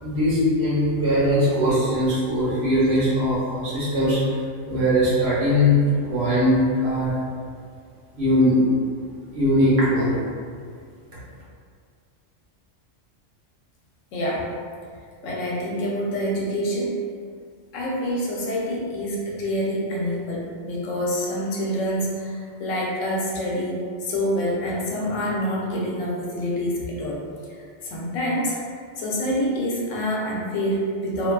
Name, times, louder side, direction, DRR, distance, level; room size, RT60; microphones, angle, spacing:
voice 1, 0.0-4.4 4.7-5.8 6.0-7.2 8.2-8.6 9.3-10.2, equal, 60° right, -9 dB, 1.0 m, -20 dB
voice 2, 14.1-14.5 15.2-17.0 17.7-27.2 27.8-28.6 29.0-31.3, equal, 80° left, -4 dB, 0.9 m, -26 dB
2.5 x 2.2 x 2.2 m, 2.1 s
omnidirectional pair, 1.3 m